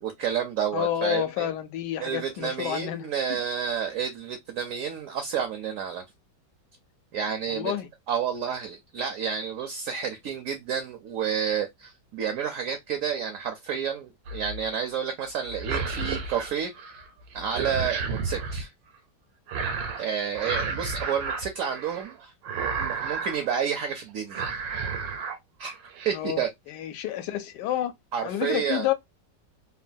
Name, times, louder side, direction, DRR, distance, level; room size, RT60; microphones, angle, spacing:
voice 1, 0.0-1.5 2.0-6.0 7.1-7.7 8.1-16.7 17.3-18.7 20.0-22.3 22.8-24.5 25.6-25.8 26.0-26.5 28.1-28.9, right 7 dB, 70° right, 0.8 m, -30 dB
voice 2, 0.7-3.1 7.5-7.9 26.1-27.9 28.2-28.9, left 12 dB, 75° left, 1.1 m, -29 dB
sound 1, 14.3-14.7 15.5-17.1 17.3-18.6 19.5-20.1 20.3-22.1 22.4-23.5 23.8-24.0 24.3-25.4 25.7-26.2, right 5 dB, 85° right, 1.4 m, -32 dB
3.2 x 2.2 x 2.5 m
omnidirectional pair, 1.9 m